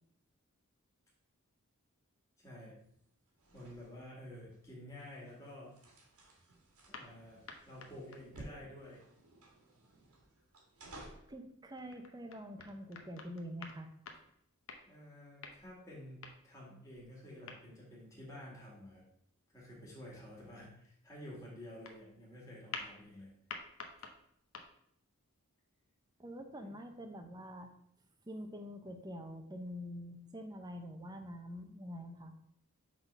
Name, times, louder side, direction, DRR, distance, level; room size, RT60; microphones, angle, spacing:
voice 1, 2.4-2.8 3.5-5.8 6.9-9.0 14.9-19.0 19.5-23.3 26.6-26.7, left 1 dB, 15° left, -5 dB, 2.1 m, -51 dB
sound 1, 2.8-11.4, right 1 dB, 85° right, 1.7 m, -56 dB
sound 2, 6.9-8.6 11.5-15.0 15.4-16.6 16.9-17.8 21.9-22.1 22.7-23.2 23.5-24.7, left 4 dB, 65° left, 0.8 m, -49 dB
voice 2, 11.3-13.9 26.2-27.7 28.2-32.3, equal, 20° right, 6 dB, 0.7 m, -46 dB
6.0 x 3.8 x 5.4 m, 0.70 s
head